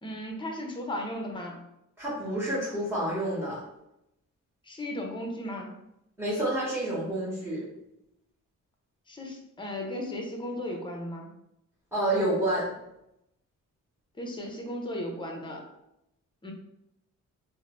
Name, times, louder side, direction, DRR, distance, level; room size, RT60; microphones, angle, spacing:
voice 1, 0.0-1.6 4.7-5.7 9.1-11.3 14.2-15.6 16.4-16.5, left 1 dB, 15° left, 1 dB, 0.6 m, -35 dB
voice 2, 2.0-3.6 6.2-7.6 11.9-12.7, right 1 dB, 5° right, -10 dB, 1.1 m, -28 dB
2.9 x 2.0 x 2.9 m, 0.83 s
cardioid pair, 105°, 32 cm